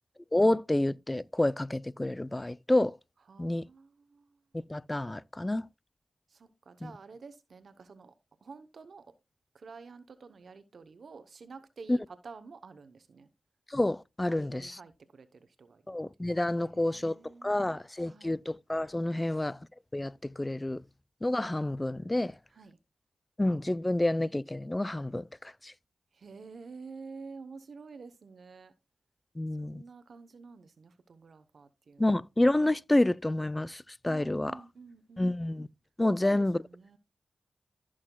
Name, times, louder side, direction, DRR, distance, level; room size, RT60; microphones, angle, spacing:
voice 1, 0.3-3.0 3.4-3.6 4.5-5.7 6.8-6.9 11.9-12.0 13.7-14.8 15.9-19.6 19.9-20.8 21.2-22.4 23.4-25.7 29.4-29.8 32.0-34.6 35.2-35.7 36.0-36.6, left 1 dB, 20° left, 0.4 m, -29 dB
voice 2, 3.3-4.3 6.3-8.1 8.4-9.0 9.5-13.3 14.3-15.8 16.6-18.4 19.1-19.4 22.5-22.8 26.1-28.7 29.6-32.2 34.1-35.3 36.1-37.0, right 4 dB, 70° right, 0.8 m, -50 dB
15.0 x 6.3 x 2.2 m
cardioid pair, 55°, 0 cm